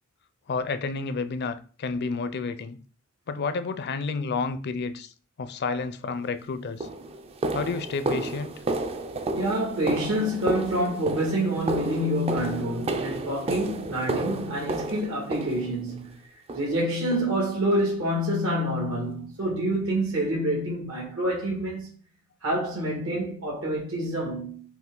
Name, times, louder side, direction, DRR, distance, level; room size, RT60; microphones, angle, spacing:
voice 1, 0.5-2.8 3.3-5.1 5.4-6.9 7.5-8.6, left 4 dB, 50° left, 0.4 m, -30 dB
sound 1, 6.1-6.3 6.8-16.0 16.5-16.8 17.1-17.3 17.7-17.9 18.3-18.4 18.9-19.0, right 2 dB, 30° right, 0.4 m, -31 dB
voice 2, 9.3-16.1 16.5-21.9 22.4-24.6, right 1 dB, 80° right, 2.0 m, -27 dB
5.7 x 2.4 x 3.8 m
head